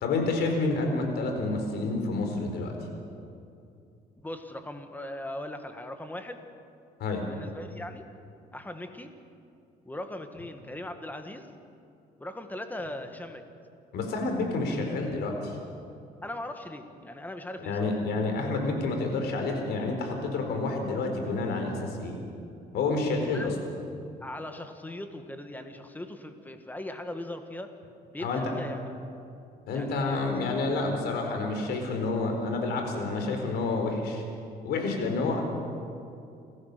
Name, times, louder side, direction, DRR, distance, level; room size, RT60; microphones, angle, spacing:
voice 1, 0.0-2.7 7.0-7.3 13.9-15.6 17.6-22.2 22.7-23.5 28.2-28.4 29.7-34.2 34.6-35.4, left 3 dB, 75° left, 3 dB, 4.4 m, -29 dB
voice 2, 4.2-6.4 7.2-8.1 8.5-9.1 9.9-11.5 12.2-13.4 16.2-17.9 23.2-23.5 24.2-27.7 28.1-28.9 29.7-30.5, left 1 dB, 10° left, 7 dB, 1.8 m, -39 dB
28.0 x 14.5 x 6.9 m, 2.6 s
cardioid pair, 110°, 17 cm